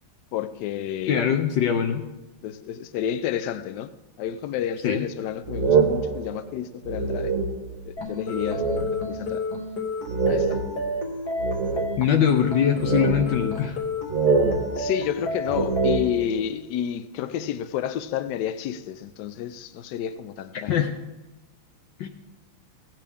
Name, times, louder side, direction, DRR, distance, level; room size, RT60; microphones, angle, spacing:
voice 1, 0.3-1.4 2.4-3.9 4.2-7.3 7.9-9.5 10.3-10.6 14.8-20.8, left 10 dB, 85° left, 0.9 m, -30 dB
voice 2, 1.1-2.0 4.8-5.1 12.0-13.8 20.7-20.9 22.0-22.1, left 8 dB, 70° left, 1.2 m, -22 dB
sound 1, 5.4-7.9 8.3-9.2 9.5-9.6 10.0-12.3 12.7-13.8 14.1-16.5, right 4 dB, 45° right, 1.2 m, -25 dB
sound 2, 8.0-16.0, left 2 dB, 50° left, 1.8 m, -32 dB
16.5 x 8.4 x 3.5 m
omnidirectional pair, 2.4 m